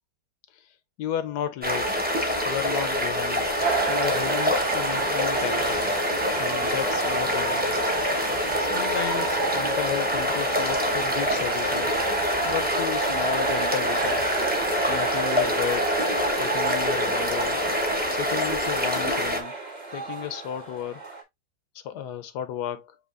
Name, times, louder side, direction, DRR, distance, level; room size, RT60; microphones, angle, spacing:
voice 1, 0.5-1.9 2.4-3.5 3.9-5.9 6.4-7.8 8.6-11.9 12.4-14.4 14.9-16.0 16.4-17.6 18.1-19.5 19.9-21.0 21.7-23.0, left 10 dB, 75° left, 1.1 m, -34 dB
sound 1, 1.6-19.4, left 1 dB, 10° right, 0.6 m, -26 dB
sound 2, 3.6-21.2, right 3 dB, 30° right, 1.2 m, -31 dB
sound 3, 3.6-8.6, right 7 dB, 60° right, 1.1 m, -40 dB
7.8 x 2.8 x 2.4 m
omnidirectional pair, 1.9 m